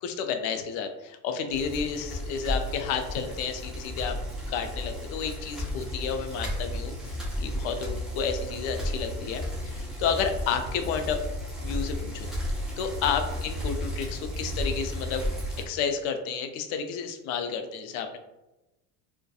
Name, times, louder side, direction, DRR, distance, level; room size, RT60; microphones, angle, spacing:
voice 1, 0.0-4.2 4.5-11.2 11.6-12.3 12.8-15.2 15.7-18.2, left 6 dB, 70° left, 7 dB, 0.5 m, -31 dB
Bicycle, 1.5-15.6, left 1 dB, ahead, 0.4 m, -33 dB
2.5 x 2.2 x 2.3 m, 0.97 s
supercardioid pair, 110°, 44 cm